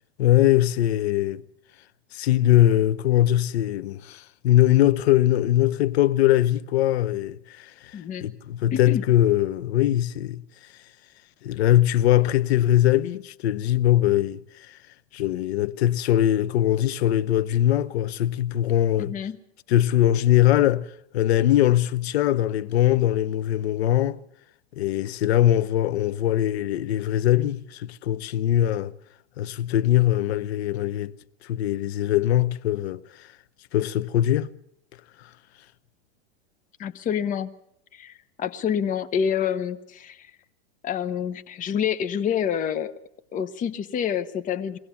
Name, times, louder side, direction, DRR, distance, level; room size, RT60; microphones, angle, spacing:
voice 1, 0.2-1.4 2.1-10.4 11.4-14.8 15.1-19.1 19.7-24.2 24.8-28.9 29.4-31.1 31.4-33.3 33.7-34.5, left 13 dB, 70° left, 0.9 m, -21 dB
voice 2, 7.9-8.3 8.7-9.0 19.0-19.4 36.8-37.5 37.9-40.3 40.8-42.9 43.3-44.8, left 8 dB, 25° left, 0.9 m, -27 dB
22.0 x 17.0 x 7.2 m
hypercardioid pair, 125°, 33 cm